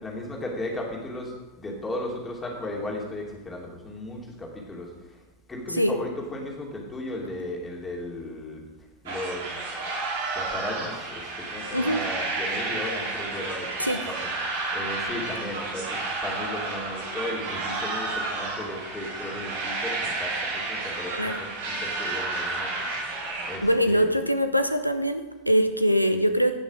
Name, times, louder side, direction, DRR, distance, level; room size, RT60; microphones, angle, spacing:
voice 1, 0.0-5.2 5.5-8.6 9.0-10.0 10.3-24.1, left 1 dB, 15° left, -1 dB, 2.8 m, -36 dB
sound 1, 9.1-23.6, right 3 dB, 55° right, 2.9 m, -31 dB
voice 2, 23.6-26.6, equal, 90° left, 9 dB, 0.7 m, -23 dB
16.0 x 6.2 x 5.0 m, 1.1 s
figure-of-eight pair, 90°, 0 cm